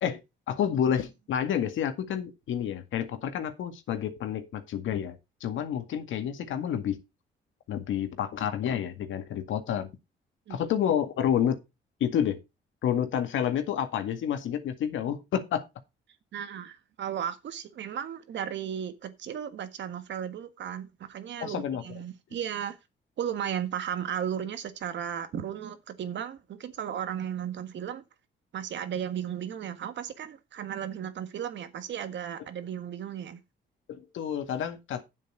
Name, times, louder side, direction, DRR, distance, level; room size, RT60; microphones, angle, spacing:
voice 1, 0.5-7.0 7.7-9.9 10.5-11.6 12.0-12.4 12.8-15.6 21.4-21.8 33.9-35.0, left 9 dB, 75° left, 2.0 m, -29 dB
voice 2, 16.3-22.8 23.2-28.0 28.5-33.4, right 9 dB, 65° right, 1.6 m, -35 dB
9.1 x 7.6 x 4.5 m
cardioid pair, 90°, 20 cm